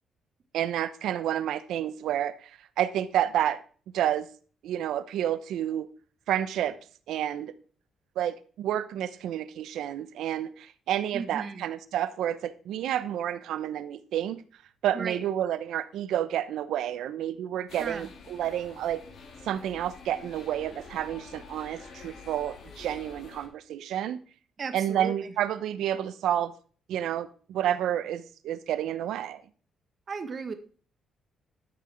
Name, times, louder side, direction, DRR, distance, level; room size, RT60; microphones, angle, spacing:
voice 1, 0.5-3.6 3.9-4.3 4.6-5.9 6.3-6.8 7.1-7.5 8.2-14.4 14.8-19.0 19.4-24.2 24.7-26.5 26.9-29.4, right 11 dB, 80° right, 14 dB, 0.9 m, -30 dB
voice 2, 11.1-11.6 14.9-15.2 17.8-18.1 24.6-25.3 30.1-30.5, right 5 dB, 45° right, 8 dB, 1.6 m, -35 dB
sound 1, 17.7-23.5, left 4 dB, 65° left, 2.9 m, -48 dB
13.0 x 6.2 x 4.5 m, 0.41 s
cardioid pair, 90°, 0 cm